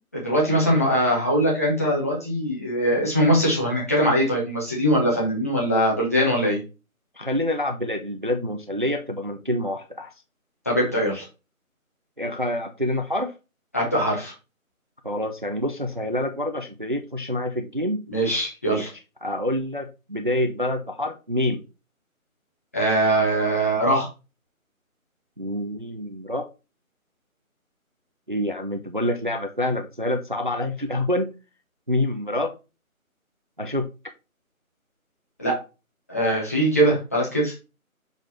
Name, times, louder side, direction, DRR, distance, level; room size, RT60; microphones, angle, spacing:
voice 1, 0.1-6.6 10.6-11.2 13.7-14.3 18.1-18.9 22.7-24.1 35.4-35.6 36.1-37.5, right 1 dB, 10° left, -5 dB, 1.2 m, -22 dB
voice 2, 7.2-10.1 12.2-13.3 15.0-18.0 18.7-18.8 19.2-21.6 25.4-26.5 28.3-31.3 31.9-32.5 33.6-33.9, left 1 dB, 35° right, 6 dB, 0.6 m, -27 dB
6.9 x 4.0 x 4.3 m, 0.29 s
figure-of-eight pair, 160°, 43 cm